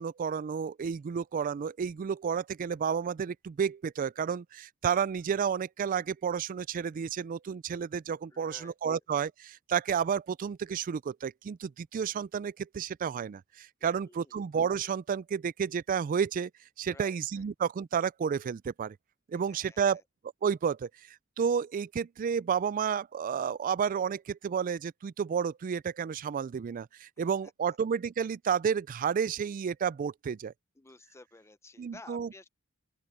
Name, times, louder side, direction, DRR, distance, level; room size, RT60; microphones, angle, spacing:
voice 1, 0.0-16.5 16.8-19.0 19.3-20.0 20.4-20.9 21.4-30.5 31.8-32.3, right 7 dB, 40° right, 0.3 m, -31 dB
voice 2, 8.3-9.0 13.8-14.4 16.9-17.4 19.5-20.0 27.2-27.3 27.7-27.8 30.8-32.5, left 2 dB, 15° left, 0.6 m, -54 dB
open air
head